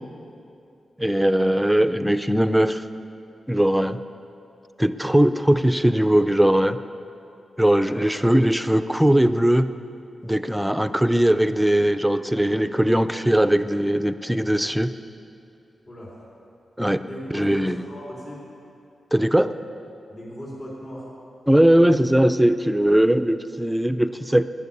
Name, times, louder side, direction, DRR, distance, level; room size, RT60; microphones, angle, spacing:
voice 1, 1.0-2.8 3.5-4.0 4.8-6.8 7.6-9.7 10.2-14.9 16.8-17.0 17.3-17.8 19.1-19.5 21.5-24.4, right 1 dB, 5° right, 11 dB, 0.5 m, -19 dB
voice 2, 15.9-16.2 17.0-18.4 20.1-21.1 21.7-21.8, equal, 50° left, -6 dB, 3.2 m, -37 dB
11.0 x 10.0 x 8.5 m, 2.6 s
cardioid pair, 85°, 0 cm